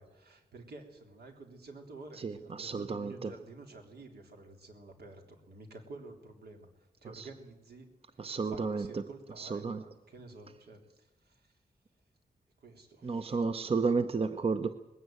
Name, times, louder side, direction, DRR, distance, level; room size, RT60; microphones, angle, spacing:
voice 1, 0.0-6.7 7.0-7.9 8.1-11.5 12.6-13.4, right 2 dB, 75° right, 4 dB, 3.6 m, -51 dB
voice 2, 2.2-3.3 7.1-7.3 8.2-9.0 9.4-9.8 13.0-14.7, right 4 dB, 35° right, 10 dB, 0.8 m, -32 dB
20.0 x 16.5 x 9.3 m, 1.0 s
wide cardioid pair, 170°, 16 cm